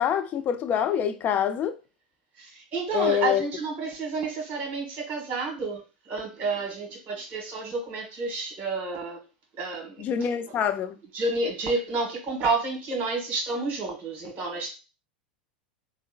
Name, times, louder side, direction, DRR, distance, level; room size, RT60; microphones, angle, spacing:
voice 1, 0.0-1.8 2.9-3.5 10.0-11.0, left 9 dB, 35° left, 0.4 m, -25 dB
voice 2, 2.4-5.8 6.1-9.2 9.6-10.0 11.1-14.7, right 3 dB, 40° right, 1.4 m, -30 dB
3.6 x 2.1 x 2.4 m
hypercardioid pair, 90°, 5 cm